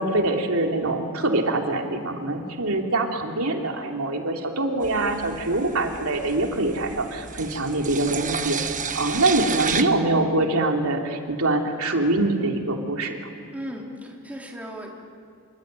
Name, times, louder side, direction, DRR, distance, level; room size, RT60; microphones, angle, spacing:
voice 1, 0.0-8.6 8.9-13.2, right 2 dB, 75° right, 2 dB, 3.1 m, -24 dB
sound 1, 4.8-9.8, right 6 dB, 35° right, 1.4 m, -31 dB
voice 2, 13.5-15.0, equal, 5° right, -1 dB, 3.6 m, -36 dB
27.5 x 23.5 x 9.1 m, 2.3 s
head